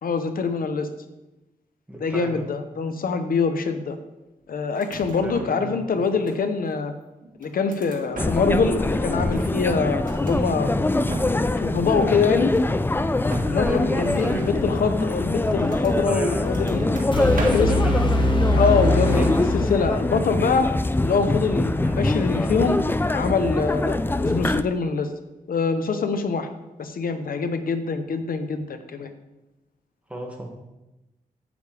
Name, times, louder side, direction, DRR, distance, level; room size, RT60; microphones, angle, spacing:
voice 1, 0.0-0.9 2.0-4.0 4.5-6.9 7.4-10.7 11.3-12.5 13.4-16.8 17.5-17.9 18.5-20.7 21.0-22.8 23.1-25.1 25.5-26.5 26.8-29.1, left 5 dB, 80° left, 9 dB, 0.8 m, -24 dB
voice 2, 1.9-2.6 5.2-5.8 13.7-14.5 16.1-16.5 17.1-18.4 19.2-19.5 21.8-22.0 30.1-30.5, right 1 dB, 10° right, -2 dB, 2.0 m, -33 dB
sound 1, 4.7-5.7 5.9-6.7 7.2-8.7 9.0-10.4 10.8-11.6 11.9-12.8 13.3-16.0 16.4-17.8 18.2-18.9 19.2-19.5, right 3 dB, 75° right, 1.6 m, -37 dB
sound 2, 8.2-24.6, left 2 dB, 15° left, 0.4 m, -24 dB
sound 3, 17.1-20.1, left 1 dB, 35° left, 1.1 m, -22 dB
10.0 x 8.1 x 3.4 m, 1.0 s
wide cardioid pair, 90°, 15 cm